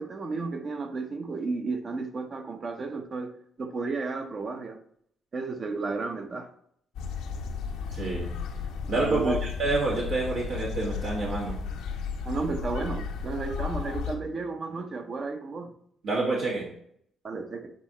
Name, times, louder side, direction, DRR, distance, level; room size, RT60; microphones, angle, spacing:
voice 1, 0.0-3.3 3.6-4.8 5.3-6.5 9.0-9.4 12.2-15.7 17.2-17.7, right 4 dB, 45° right, 7 dB, 0.9 m, -33 dB
sound 1, 6.9-14.2, left 5 dB, 90° left, 0.8 m, -34 dB
voice 2, 7.9-8.3 8.9-9.3 9.6-11.5 16.0-16.7, right 3 dB, 75° right, -5 dB, 1.9 m, -27 dB
7.9 x 4.3 x 3.0 m, 0.67 s
cardioid pair, 90°, 0 cm